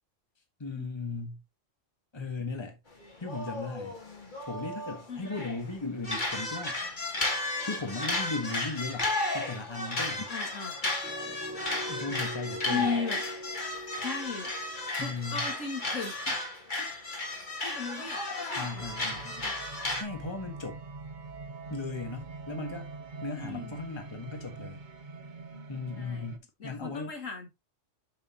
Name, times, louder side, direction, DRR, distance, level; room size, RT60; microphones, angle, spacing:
voice 1, 0.6-1.4 2.1-2.8 3.2-4.0 4.5-6.8 7.6-10.3 11.9-12.9 15.0-15.5 18.5-19.3 19.9-20.8 21.7-22.9 23.2-24.8 25.7-27.1, left 3 dB, 20° left, 1.6 m, -37 dB
sound 1, 3.0-5.6 6.0-20.0, left 2 dB, 40° left, 2.1 m, -34 dB
voice 2, 10.3-10.8 12.7-13.2 13.9-14.5 15.0-16.3 16.8-16.9 17.6-18.9 19.2-19.5 23.4-23.8 26.0-26.3 26.6-27.5, left 4 dB, 85° left, 2.5 m, -36 dB
sound 2, 11.0-16.9, equal, 10° right, 2.0 m, -43 dB
sound 3, 18.8-26.4, right 4 dB, 40° right, 1.0 m, -44 dB
7.2 x 6.7 x 3.0 m
omnidirectional pair, 1.3 m